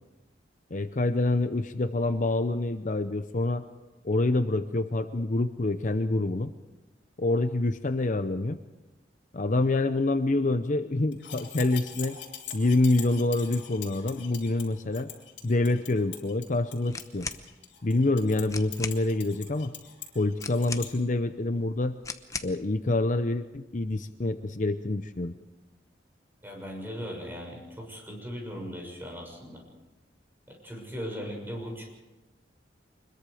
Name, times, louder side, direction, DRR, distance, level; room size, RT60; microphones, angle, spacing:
voice 1, 0.7-3.6 4.0-6.5 7.2-8.6 9.3-12.2 12.5-15.1 15.4-17.3 17.8-19.7 20.1-22.0 22.4-25.3, left 2 dB, 45° left, 10 dB, 0.7 m, -26 dB
sound 1, 11.1-20.9, left 9 dB, 70° left, 3.8 m, -43 dB
sound 2, 16.9-17.5 18.2-18.3 18.5-19.0 20.4-21.1 22.0-22.6, left 4 dB, 15° left, 0.9 m, -37 dB
voice 2, 26.4-29.6 30.5-31.9, equal, 10° right, 0 dB, 6.7 m, -38 dB
25.0 x 21.5 x 5.0 m, 1.1 s
head